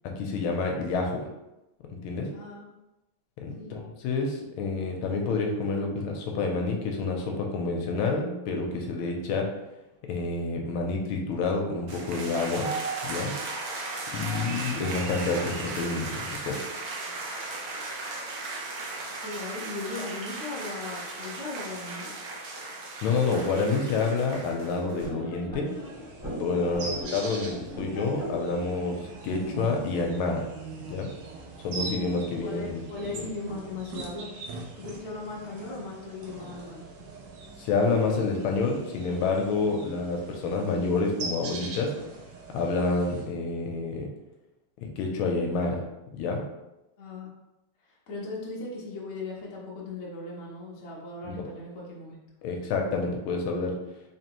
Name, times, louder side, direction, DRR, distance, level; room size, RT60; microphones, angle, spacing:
voice 1, 0.2-1.3 1.9-2.3 3.4-9.5 10.1-12.7 13.0-13.3 14.1-16.7 23.0-25.7 26.4-30.5 30.9-31.1 31.6-32.8 37.6-41.9 42.5-44.1 44.8-45.8 46.1-46.4 51.2-51.5 52.4-53.8, left 3 dB, 80° left, 2 dB, 1.4 m, -28 dB
voice 2, 2.3-2.7 3.5-3.9 19.2-22.1 26.6-27.0 32.1-34.3 34.8-36.9 47.0-47.3 47.9-52.2, left 3 dB, 55° left, -4 dB, 0.7 m, -38 dB
sound 1, 11.9-25.1, right 3 dB, 85° right, 0.7 m, -36 dB
sound 2, 25.0-30.1, equal, 5° right, 0.9 m, -40 dB
sound 3, 25.7-43.3, right 3 dB, 70° right, 1.3 m, -41 dB
3.7 x 3.3 x 2.9 m, 0.96 s
omnidirectional pair, 2.4 m